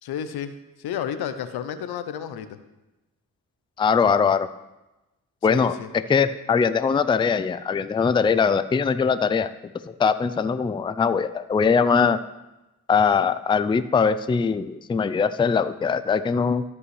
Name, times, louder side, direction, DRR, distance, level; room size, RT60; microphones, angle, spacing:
voice 1, 0.0-2.5 5.5-5.9, left 9 dB, 80° left, 11 dB, 0.7 m, -31 dB
voice 2, 3.8-4.5 5.4-5.8 6.1-9.5 9.9-12.2 12.9-16.6, left 6 dB, 15° left, 12 dB, 0.3 m, -21 dB
13.5 x 5.5 x 3.2 m, 1.0 s
supercardioid pair, 50°, 37 cm